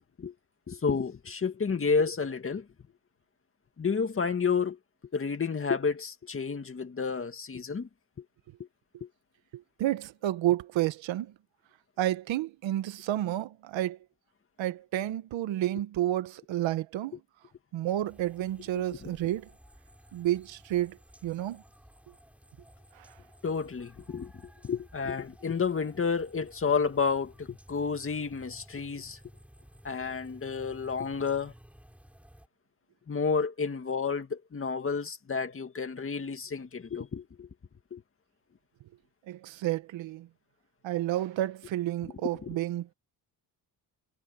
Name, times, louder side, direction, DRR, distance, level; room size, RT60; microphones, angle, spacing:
voice 1, 0.7-2.7 3.8-4.8 5.1-7.9 8.2-8.3 9.0-9.1 18.8-19.1 23.4-29.2 29.8-31.5 33.1-37.5 37.9-38.0 42.4-42.5, left 5 dB, 30° left, 2.0 m, -31 dB
voice 2, 9.5-11.3 12.0-14.0 14.6-17.1 17.7-19.5 20.1-21.0 21.2-21.6 22.9-23.1 39.3-40.3 40.8-42.9, right 13 dB, 80° right, 1.2 m, -30 dB
sound 1, 18.0-32.5, equal, 5° right, 6.0 m, -56 dB
cardioid pair, 125°, 45 cm